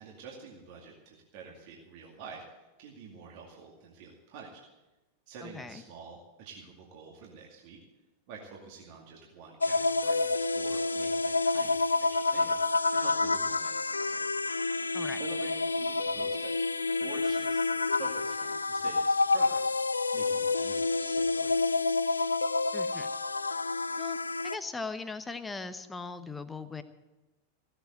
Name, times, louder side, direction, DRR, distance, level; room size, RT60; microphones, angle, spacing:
voice 1, 0.0-2.4 2.8-4.6 5.3-7.8 8.3-12.6 12.9-14.3 15.2-16.5 16.9-19.7 20.1-21.8, right 5 dB, 45° right, -1 dB, 2.3 m, -48 dB
voice 2, 5.4-5.8 14.9-15.2 22.7-23.1 23.9-26.8, left 4 dB, 10° left, 11 dB, 1.0 m, -39 dB
sound 1, 9.6-24.6, left 3 dB, 80° left, 0.4 m, -29 dB
16.5 x 7.9 x 8.1 m, 1.1 s
figure-of-eight pair, 90°, 0 cm